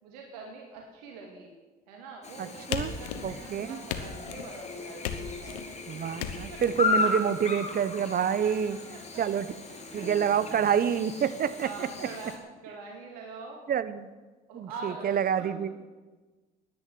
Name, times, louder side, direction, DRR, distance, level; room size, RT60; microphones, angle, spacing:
voice 1, 0.0-1.5 1.9-6.6 8.4-9.2 9.7-10.5 11.6-13.6 14.5-15.8, right 4 dB, 85° right, 0 dB, 2.4 m, -45 dB
Chirp tweet / Buzz, 2.2-12.4, left 3 dB, 30° left, 3.4 m, -35 dB
voice 2, 2.4-2.9 3.2-3.8 5.9-8.8 9.2-9.5 9.9-12.1 13.7-14.1 14.5-15.7, right 8 dB, 45° right, 14 dB, 1.1 m, -28 dB
sound 1, 2.7-3.5 3.9-4.5 5.0-5.7 6.2-6.7, left 8 dB, 80° left, 1.2 m, -35 dB
sound 2, 4.6-10.0, left 5 dB, 65° left, 2.5 m, -49 dB
11.0 x 10.0 x 9.4 m, 1.3 s
hypercardioid pair, 60°, 21 cm